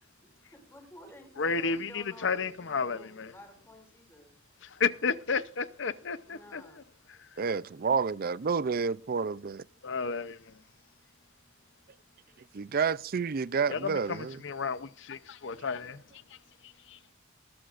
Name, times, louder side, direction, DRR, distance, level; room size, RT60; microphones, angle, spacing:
voice 1, 0.2-4.4 6.2-6.9 7.1-7.2 12.3-12.4, left 1 dB, 10° left, 5.7 m, -53 dB
voice 2, 1.4-3.3 4.6-6.8 9.8-10.4 13.7-16.0 16.9-17.0, left 5 dB, 65° left, 0.7 m, -32 dB
voice 3, 7.4-9.7 12.5-14.4, right 5 dB, 45° right, 0.5 m, -29 dB
voice 4, 10.5-12.6 15.2-15.7 16.2-17.1, left 3 dB, 45° left, 2.5 m, -72 dB
20.5 x 13.0 x 2.5 m
head